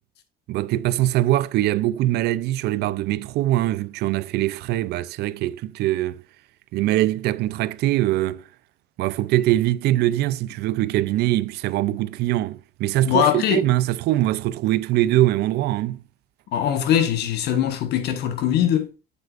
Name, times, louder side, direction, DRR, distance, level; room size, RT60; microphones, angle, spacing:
voice 1, 0.5-6.2 6.7-8.4 9.0-16.0, right 15 dB, 75° right, 0.5 m, -22 dB
voice 2, 13.0-13.7 16.5-18.9, left 9 dB, 75° left, 1.4 m, -21 dB
7.9 x 7.0 x 2.5 m
cardioid pair, 110°, 17 cm